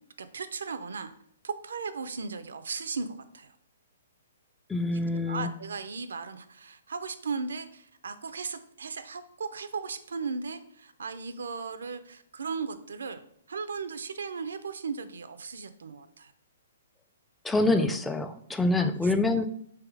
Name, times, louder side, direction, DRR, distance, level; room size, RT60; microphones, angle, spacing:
voice 1, 0.2-1.1 1.4-3.5 5.3-16.3 18.8-18.9, right 5 dB, 85° right, 11 dB, 0.5 m, -36 dB
voice 2, 4.7-5.5 17.4-19.5, left 2 dB, 5° left, 9 dB, 0.3 m, -26 dB
3.5 x 3.2 x 4.7 m, 0.68 s
hypercardioid pair, 145°, 0 cm